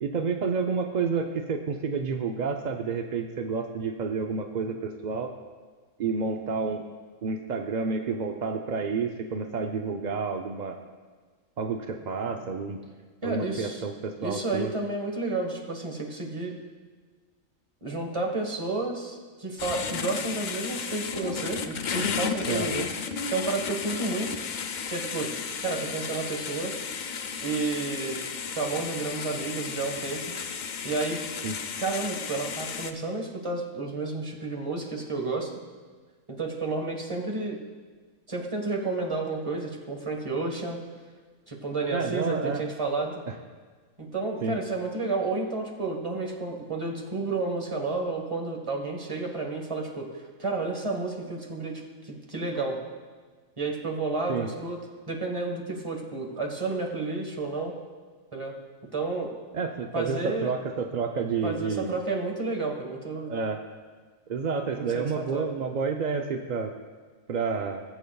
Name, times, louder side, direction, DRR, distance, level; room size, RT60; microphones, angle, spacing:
voice 1, 0.0-5.3 6.0-6.8 7.2-10.8 11.6-12.8 13.2-14.7 22.4-22.7 31.4-31.6 41.9-42.6 43.3-43.4 44.4-44.6 54.3-54.5 59.5-62.0 63.3-63.6 64.3-66.8 67.3-67.8, right 5 dB, 70° right, 4 dB, 0.4 m, -30 dB
voice 2, 13.2-13.8 14.2-16.5 17.8-22.9 23.3-24.4 24.9-25.3 25.6-26.7 27.4-28.2 28.5-30.3 30.8-31.2 31.8-35.5 36.3-37.6 38.3-40.8 41.5-43.1 44.0-50.1 50.4-52.8 53.6-54.8 55.1-57.7 58.3-58.5 58.9-59.3 59.9-60.5 61.4-63.3 64.7-65.5, right 3 dB, 25° right, 1 dB, 1.2 m, -31 dB
sound 1, 19.6-32.9, left 6 dB, 85° left, 0.4 m, -33 dB
19.5 x 8.0 x 2.3 m, 1.5 s
omnidirectional pair, 1.4 m